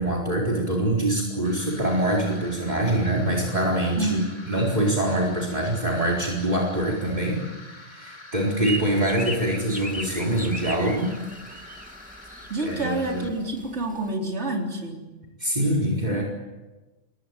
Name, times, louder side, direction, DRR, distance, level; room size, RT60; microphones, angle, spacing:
voice 1, 0.0-11.1 12.6-13.3 15.4-16.2, right 1 dB, 35° right, -3 dB, 4.5 m, -24 dB
sound 1, 1.4-13.3, left 2 dB, 85° left, 4.9 m, -46 dB
voice 2, 4.0-4.5 12.5-15.1 16.0-16.2, right 2 dB, 65° right, 0 dB, 4.3 m, -28 dB
sound 2, 8.6-14.1, right 1 dB, 5° right, 1.8 m, -38 dB
28.5 x 21.5 x 9.1 m, 1.2 s
omnidirectional pair, 1.2 m